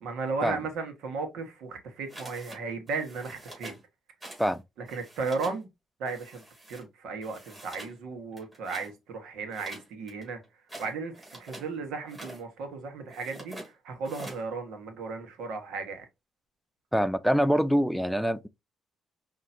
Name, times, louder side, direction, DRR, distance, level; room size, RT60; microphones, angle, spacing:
voice 1, 0.0-3.7 4.8-5.7 6.0-6.4 6.7-10.4 10.8-16.0, right 4 dB, 85° right, 1.3 m, -35 dB
sound 1, 2.1-2.6 2.9-3.8 4.2-4.6 4.8-5.6 6.1-6.8 7.2-8.0 8.3-8.9 9.5-11.7 12.0-12.4 13.1-13.7 14.0-14.4, right 1 dB, 20° right, 3.0 m, -45 dB
voice 2, 16.9-18.5, equal, ahead, 0.4 m, -25 dB
5.5 x 2.9 x 2.6 m
cardioid pair, 90°, 0 cm